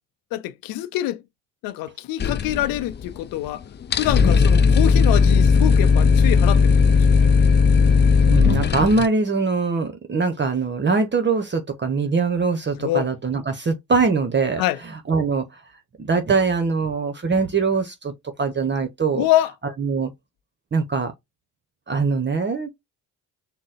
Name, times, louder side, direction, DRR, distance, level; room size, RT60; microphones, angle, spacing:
voice 1, 0.3-1.2 1.6-3.6 4.0-7.3 12.8-13.1 14.6-14.8 19.1-19.5, left 14 dB, 80° left, 0.6 m, -25 dB
sound 1, 2.2-3.2 3.5-3.6 3.8-9.1, left 5 dB, 30° left, 0.5 m, -16 dB
voice 2, 8.3-14.6 15.1-15.4 16.0-18.1 18.4-19.2 19.8-20.1 20.7-21.1 21.9-22.7, right 4 dB, 30° right, 0.9 m, -22 dB
3.9 x 2.1 x 3.9 m
supercardioid pair, 65°, 34 cm